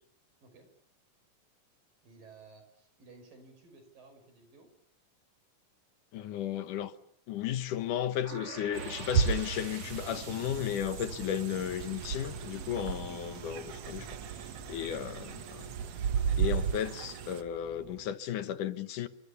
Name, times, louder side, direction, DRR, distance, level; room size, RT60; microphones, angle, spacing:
voice 1, 0.4-0.7 2.0-4.7, right 3 dB, 90° right, 7.7 m, -55 dB
voice 2, 6.1-6.9 7.3-14.1 14.7-15.7 16.4-19.1, left 10 dB, 70° left, 2.7 m, -34 dB
sound 1, 8.2-14.1, right 4 dB, 40° right, 3.8 m, -48 dB
sound 2, 8.7-17.4, right 7 dB, 60° right, 2.1 m, -34 dB
sound 3, 11.2-18.2, right 5 dB, 10° right, 2.5 m, -51 dB
29.5 x 24.5 x 7.1 m
omnidirectional pair, 3.8 m